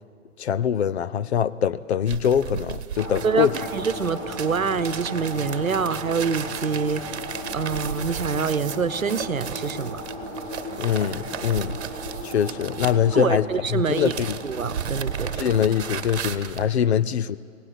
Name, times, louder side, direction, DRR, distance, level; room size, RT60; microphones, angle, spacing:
voice 1, 0.4-3.5 10.8-11.8 12.2-14.4 15.3-17.4, left 9 dB, 50° left, 16 dB, 0.7 m, -23 dB
sound 1, 2.0-13.5 13.8-16.7, right 8 dB, 55° right, 1.2 m, -35 dB
sound 2, 3.0-16.0, equal, 25° left, 4.5 m, -36 dB
voice 2, 3.7-7.2 7.5-10.0 13.1-14.1 14.4-15.5, right 5 dB, 80° right, 15 dB, 1.0 m, -26 dB
26.5 x 18.0 x 7.6 m, 2.3 s
figure-of-eight pair, 115°, 40 cm